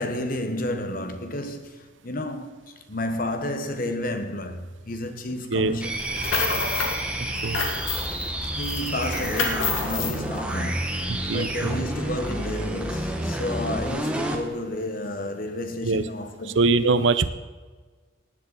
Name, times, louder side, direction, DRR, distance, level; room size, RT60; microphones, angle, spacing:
voice 1, 0.0-6.2 8.4-16.6, left 1 dB, 45° left, 1.2 m, -31 dB
sound 1, 5.8-14.4, right 1 dB, 5° right, 1.2 m, -29 dB
sound 2, 6.0-7.0 7.3-8.3 8.6-10.2, left 4 dB, 90° left, 1.9 m, -28 dB
voice 2, 7.2-7.7 11.1-11.9 15.8-16.0 16.5-17.3, right 3 dB, 70° right, 0.7 m, -23 dB
16.5 x 10.5 x 4.1 m
head